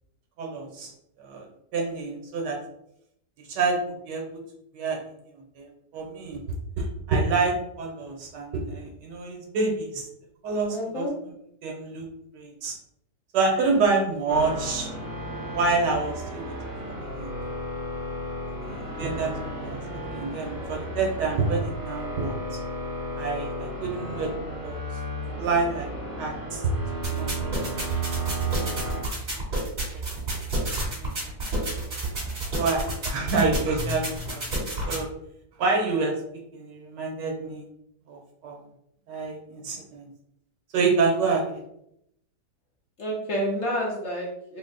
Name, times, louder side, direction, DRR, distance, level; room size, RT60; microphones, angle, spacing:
voice 1, 0.4-0.9 1.2-1.4 1.7-2.6 3.5-3.8 4.1-4.4 4.7-5.0 5.6-5.7 5.9-6.4 6.8-10.1 10.4-11.1 11.6-12.1 12.3-12.8 13.3-14.9 15.5-16.5 17.1-17.3 18.7-19.3 19.6-19.8 20.1-22.6 23.2-24.3 24.6-24.8 25.4-25.9 26.2-26.6 27.1-27.5 30.7-31.1 32.5-34.4 34.8-35.1 35.6-36.1 36.5-37.6 38.1-38.6 39.1-40.1 40.7-41.6, right 4 dB, 90° right, 1 dB, 1.5 m, -27 dB
voice 2, 10.7-11.1 13.5-13.8 43.0-44.6, equal, 60° left, -2 dB, 0.8 m, -29 dB
sound 1, 14.3-29.0, equal, 15° right, 0.9 m, -34 dB
sound 2, 27.0-35.0, right 2 dB, 45° right, 1.7 m, -29 dB
3.9 x 2.1 x 3.8 m, 0.78 s
omnidirectional pair, 1.8 m